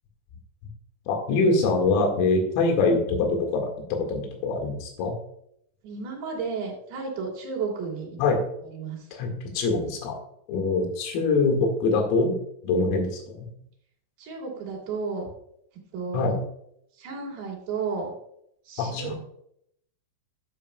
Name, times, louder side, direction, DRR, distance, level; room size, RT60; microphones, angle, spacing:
voice 1, 1.1-5.1 8.2-8.4 9.1-10.2 10.5-12.4 12.6-13.5 16.1-16.4 18.8-19.1, left 3 dB, 75° left, 3 dB, 4.5 m, -24 dB
voice 2, 5.8-8.2 8.7-9.0 14.2-15.2 15.9-16.4 17.0-18.1 18.7-19.1, right 5 dB, 55° right, -3 dB, 4.6 m, -32 dB
12.5 x 8.8 x 2.3 m, 0.71 s
omnidirectional pair, 6.0 m